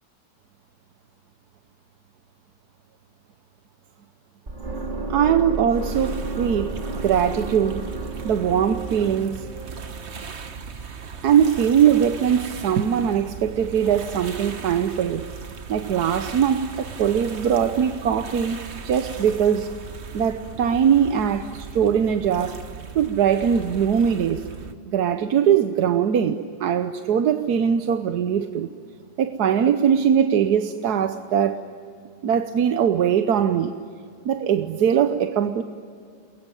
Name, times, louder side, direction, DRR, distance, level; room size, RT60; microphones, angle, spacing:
sound 1, 4.5-10.5, right 3 dB, 25° right, 4.4 m, -32 dB
voice 1, 5.1-7.9 8.2-9.5 11.2-15.3 15.7-18.6 18.8-19.7 20.1-22.6 22.9-24.5 24.9-28.7 29.2-31.6 32.2-33.7 34.2-35.6, right 8 dB, 60° right, 1.3 m, -21 dB
sound 2, 5.7-24.7, right 5 dB, 40° right, 1.3 m, -38 dB
29.5 x 22.0 x 9.2 m
omnidirectional pair, 2.0 m